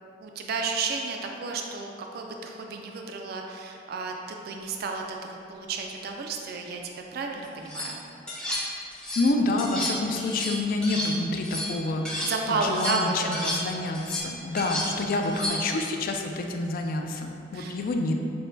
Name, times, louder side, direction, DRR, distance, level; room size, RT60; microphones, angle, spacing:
voice 1, 0.2-6.8 7.1-8.0 12.2-13.5 15.0-15.7 17.5-17.8, right 4 dB, 55° right, 2 dB, 0.3 m, -32 dB
sound 1, 7.4-7.9 8.3-9.3 9.6-12.3 12.6-15.8, left 1 dB, 5° left, 0.6 m, -32 dB
voice 2, 9.2-18.1, left 2 dB, 50° left, 3 dB, 0.3 m, -28 dB
6.2 x 2.1 x 2.6 m, 2.6 s
head